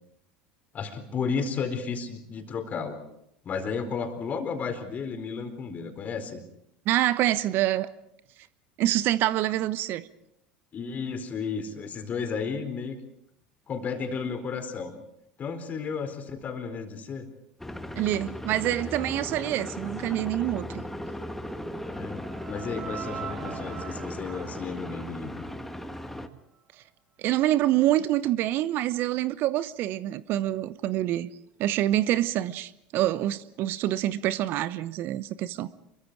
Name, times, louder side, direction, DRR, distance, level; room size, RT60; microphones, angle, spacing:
voice 1, 0.7-3.0 3.4-6.4 10.7-13.0 13.7-14.9 15.4-17.3 21.9-25.4, left 5 dB, 35° left, 4.3 m, -33 dB
voice 2, 6.9-7.9 8.8-10.0 18.0-20.8 27.2-31.3 31.6-35.7, right 14 dB, 50° right, 0.9 m, -26 dB
sound 1, 17.6-26.3, left 1 dB, 5° left, 1.7 m, -37 dB
sound 2, 21.1-26.2, right 7 dB, 30° right, 1.9 m, -43 dB
28.5 x 23.5 x 4.8 m
figure-of-eight pair, 70°, 5 cm